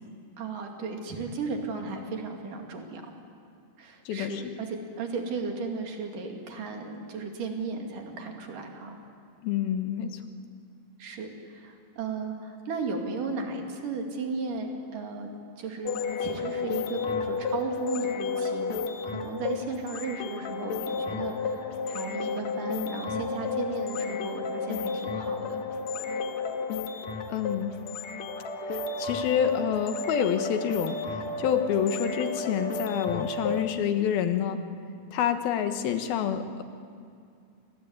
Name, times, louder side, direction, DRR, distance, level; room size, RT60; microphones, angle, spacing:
voice 1, 0.4-3.1 3.8-9.0 11.0-15.3 15.6-18.8 19.1-25.6, right 4 dB, 65° right, 2 dB, 4.0 m, -35 dB
voice 2, 4.1-4.4 9.4-10.2 27.3-27.8 28.7-34.6 35.1-36.6, left 8 dB, 85° left, 8 dB, 3.2 m, -28 dB
sound 1, 15.9-33.6, left 4 dB, 60° left, 2.4 m, -32 dB
27.5 x 21.0 x 9.6 m, 2.4 s
omnidirectional pair, 4.2 m